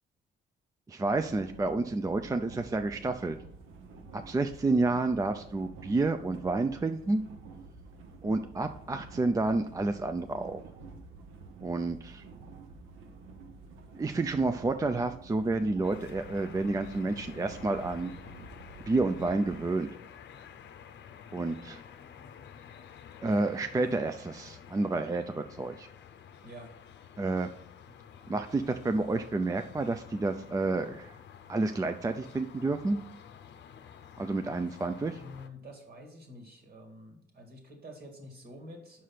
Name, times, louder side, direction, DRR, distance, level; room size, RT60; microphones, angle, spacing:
voice 1, 0.9-3.4 4.1-7.2 8.2-10.6 11.6-12.2 13.9-18.1 18.9-19.9 21.3-21.8 23.2-25.9 27.2-27.5 28.3-31.1 31.5-33.0 34.2-35.2, right 3 dB, 15° right, 8 dB, 0.4 m, -30 dB
sound 1, 1.0-19.7, right 4 dB, 85° right, 0.9 m, -49 dB
sound 2, 15.8-35.5, left 8 dB, 60° left, 0.6 m, -50 dB
voice 2, 34.9-39.0, left 1 dB, 50° right, 3 dB, 2.1 m, -48 dB
5.6 x 4.8 x 5.9 m, 0.74 s
cardioid pair, 90°, 20 cm